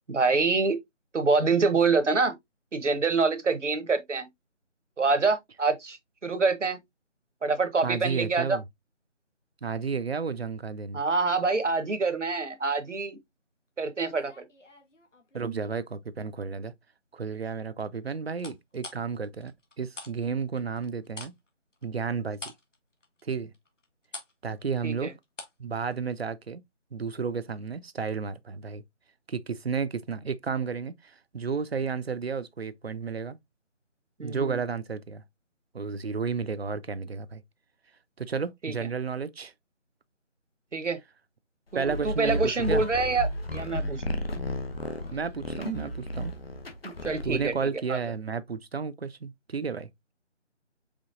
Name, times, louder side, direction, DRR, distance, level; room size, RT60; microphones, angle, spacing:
voice 1, 0.1-0.8 1.1-2.3 2.7-4.3 5.0-6.0 6.2-6.8 7.4-8.6 10.9-13.2 13.8-14.4 24.8-25.1 34.2-34.6 38.6-38.7 40.7-41.0 41.7-44.0 46.8-48.0, right 4 dB, 80° right, 1.0 m, -26 dB
voice 2, 7.8-8.6 9.6-11.0 15.3-16.7 17.1-19.5 19.8-21.3 21.8-22.4 23.2-23.5 24.4-25.1 25.6-26.6 26.9-28.8 29.3-33.4 34.2-35.2 35.7-37.4 38.2-39.5 41.7-42.8 45.1-46.3 47.2-49.9, right 5 dB, 60° right, 0.5 m, -32 dB
sound 1, 14.0-15.7 16.2-16.6 18.4-20.1 20.4-25.7 25.9-26.0, left 2 dB, 80° left, 1.4 m, -46 dB
sound 2, 41.8-47.6, left 1 dB, 55° left, 1.0 m, -33 dB
5.1 x 3.4 x 2.4 m
figure-of-eight pair, 165°, 36 cm